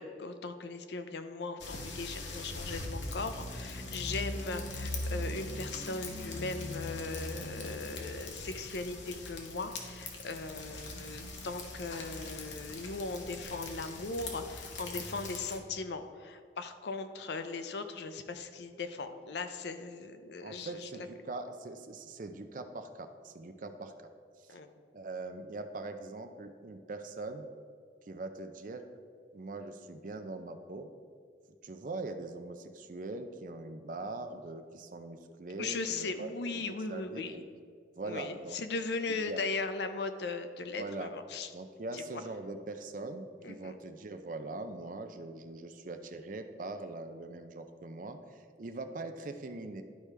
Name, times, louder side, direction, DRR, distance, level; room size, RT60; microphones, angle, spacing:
voice 1, 0.0-21.1 24.5-24.7 35.6-37.4 38.0-41.5 41.9-42.2 43.4-43.8, left 3 dB, 70° left, 8 dB, 0.5 m, -38 dB
sound 1, 1.6-15.6, left 2 dB, 85° left, 1.1 m, -41 dB
voice 2, 20.4-24.1 24.4-24.6 24.9-27.5 28.0-28.9 29.3-30.9 31.6-36.3 36.5-37.5 38.0-38.6 39.3-39.4 40.8-41.1 41.5-49.8, right 2 dB, 45° right, 7 dB, 0.5 m, -42 dB
11.5 x 4.7 x 3.3 m, 2.2 s
head